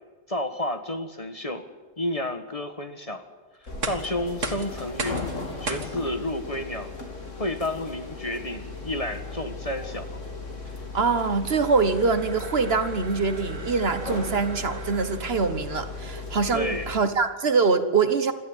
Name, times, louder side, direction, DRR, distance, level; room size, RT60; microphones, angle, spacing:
voice 1, 0.3-1.6 2.0-3.2 3.6-5.2 5.6-6.9 7.4-10.2 16.5-16.9, left 1 dB, 30° left, 8 dB, 1.5 m, -31 dB
sound 1, 3.6-15.5, right 3 dB, 80° right, 2.3 m, -40 dB
sound 2, 3.7-17.0, left 3 dB, 80° left, 3.3 m, -37 dB
voice 2, 10.9-18.3, right 4 dB, 55° right, 10 dB, 1.4 m, -24 dB
27.0 x 13.5 x 8.9 m, 1.4 s
omnidirectional pair, 1.3 m